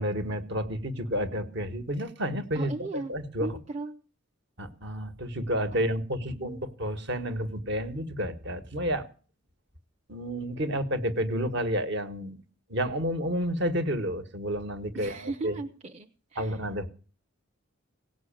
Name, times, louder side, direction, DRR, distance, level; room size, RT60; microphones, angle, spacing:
voice 1, 0.0-3.5 4.6-9.1 10.1-12.4 12.7-15.2 15.4-15.5 16.4-16.9, equal, 60° right, 1.5 m, -30 dB
voice 2, 2.5-3.1 3.4-3.9 5.7-6.6 14.9-16.6, right 3 dB, 30° right, 0.8 m, -38 dB
17.5 x 6.3 x 8.9 m
head